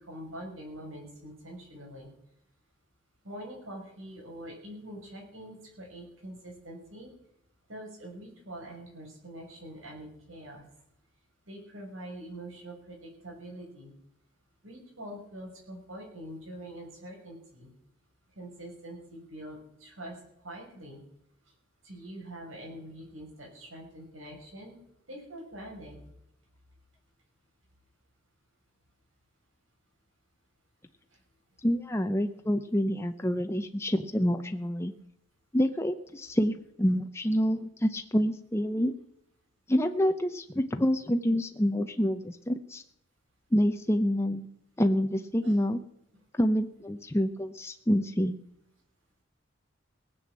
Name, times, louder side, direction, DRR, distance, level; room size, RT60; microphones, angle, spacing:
voice 1, 0.0-2.1 3.2-7.1 7.7-10.6 11.5-13.9 14.6-17.7 18.3-20.2 20.4-21.0 21.8-24.8 25.1-26.0 45.3-45.5, right 1 dB, 85° right, 0 dB, 6.1 m, -44 dB
voice 2, 31.6-34.9 35.5-38.9 39.7-42.8 43.5-44.5 44.8-45.8 46.3-48.3, equal, 15° left, 6 dB, 0.7 m, -27 dB
19.0 x 7.8 x 7.5 m, 0.79 s
head